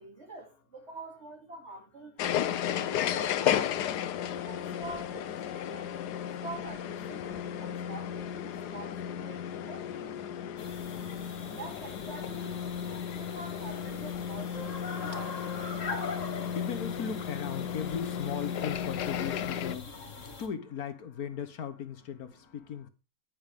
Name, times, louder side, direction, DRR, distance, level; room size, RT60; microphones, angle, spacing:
voice 1, 0.0-3.7 4.3-6.0 6.4-10.5 11.4-12.6 13.1-15.4, right 2 dB, 45° right, 2.8 m, -46 dB
sound 1, 2.2-19.7, left 9 dB, 85° left, 1.3 m, -34 dB
sound 2, 10.6-20.5, left 4 dB, 50° left, 2.2 m, -42 dB
voice 2, 15.7-22.9, left 7 dB, 70° left, 1.5 m, -38 dB
9.5 x 9.3 x 3.4 m
omnidirectional pair, 1.7 m